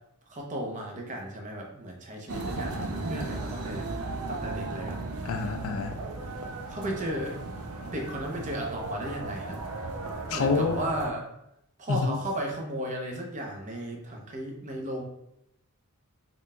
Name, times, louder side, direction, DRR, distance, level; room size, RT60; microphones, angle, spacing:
voice 1, 0.3-3.8 4.3-5.0 6.7-7.4 7.9-9.6 10.3-11.3 11.8-15.0, right 1 dB, 35° right, 0 dB, 0.7 m, -35 dB
sound 1, 2.3-11.1, right 3 dB, 70° right, 0.5 m, -35 dB
voice 2, 5.2-6.0 10.3-10.8 11.9-12.2, left 4 dB, 65° left, 7 dB, 0.4 m, -27 dB
3.7 x 3.7 x 2.2 m, 0.80 s
head